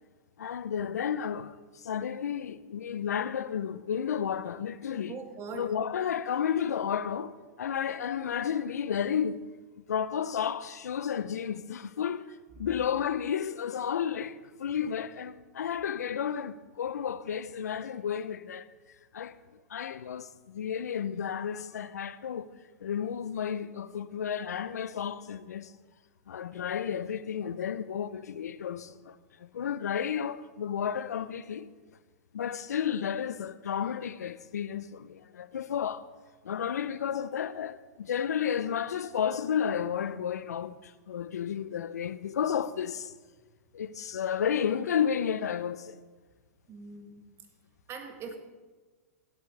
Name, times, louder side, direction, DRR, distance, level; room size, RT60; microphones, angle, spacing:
voice 1, 0.4-5.2 5.5-9.4 9.9-12.3 12.6-18.7 19.1-19.4 19.7-22.5 22.8-25.7 26.3-31.7 32.3-36.0 36.4-43.1 43.7-46.0, left 8 dB, 90° left, 0.5 m, -32 dB
voice 2, 5.1-5.7 46.7-47.2 47.9-48.4, right 5 dB, 30° right, 1.6 m, -41 dB
16.5 x 8.5 x 3.3 m
hypercardioid pair, 125°, 9 cm